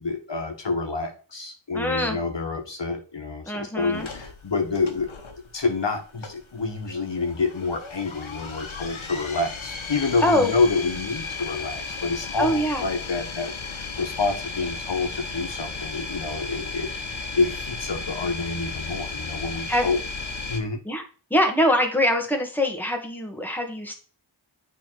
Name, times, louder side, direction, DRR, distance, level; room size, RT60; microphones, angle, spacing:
voice 1, 0.0-5.1 5.5-20.0 20.5-20.8, left 3 dB, 65° left, 3 dB, 1.4 m, -28 dB
voice 2, 1.7-2.2 3.4-4.1 10.2-10.5 12.4-12.8 19.7-19.9 20.8-21.0 21.3-23.9, equal, 5° left, 3 dB, 1.6 m, -23 dB
sound 1, 3.9-20.6, left 4 dB, 85° left, 1.2 m, -35 dB
8.7 x 3.5 x 4.6 m, 0.38 s
wide cardioid pair, 55°, 46 cm